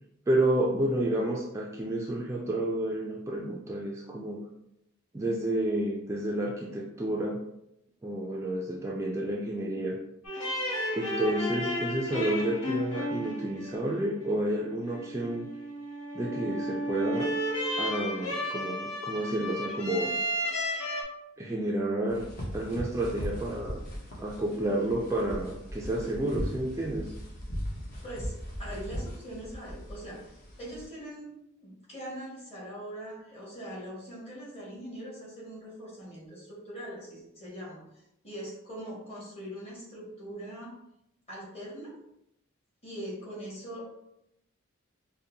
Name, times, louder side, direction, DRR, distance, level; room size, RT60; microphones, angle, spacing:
voice 1, 0.3-4.4 5.1-7.4 8.0-10.0 10.9-15.5 16.1-17.3 17.8-20.1 21.4-22.3 22.5-23.8 24.2-27.1, right 1 dB, 15° right, -2 dB, 0.3 m, -30 dB
sound 1, 10.2-21.0, equal, 75° left, 1.1 m, -33 dB
sound 2, 22.1-30.9, equal, 45° left, 1.0 m, -39 dB
voice 2, 28.0-30.3 30.6-31.3 31.6-40.8 41.3-42.0 42.8-43.8, equal, 30° left, -6 dB, 1.5 m, -42 dB
5.0 x 2.1 x 2.8 m, 0.81 s
head